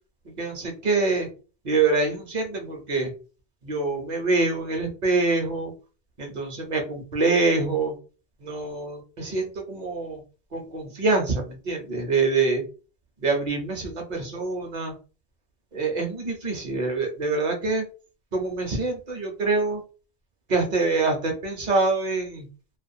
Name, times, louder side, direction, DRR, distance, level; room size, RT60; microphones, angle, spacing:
voice 1, 0.2-1.3 1.6-3.1 3.6-5.7 6.2-7.9 8.4-10.2 10.5-12.6 13.2-14.9 15.7-17.8 18.3-19.8 20.5-22.5, right 3 dB, 45° right, 3 dB, 0.8 m, -25 dB
2.4 x 2.3 x 2.7 m, 0.35 s
omnidirectional pair, 1.1 m